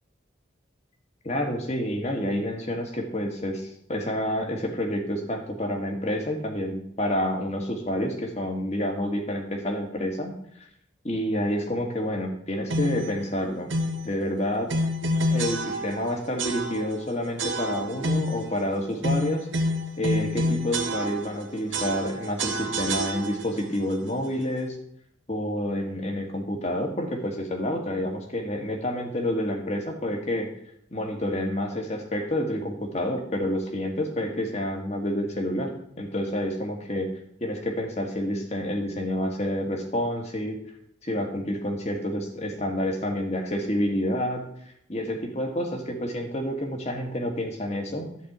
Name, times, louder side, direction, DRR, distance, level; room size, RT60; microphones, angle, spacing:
voice 1, 1.2-10.4 11.0-13.7 14.0-14.7 15.3-19.5 20.0-24.8 25.3-30.5 30.9-35.7 36.0-37.1 37.4-40.6 41.0-44.4 44.9-48.1, left 1 dB, 35° left, 2 dB, 1.8 m, -28 dB
sound 1, 12.7-13.1 13.7-14.1 14.7-16.1 16.4-17.0 17.4-18.5 19.0-21.4 21.7-23.6, equal, 90° right, 1.5 m, -28 dB
12.0 x 4.4 x 8.0 m, 0.71 s
head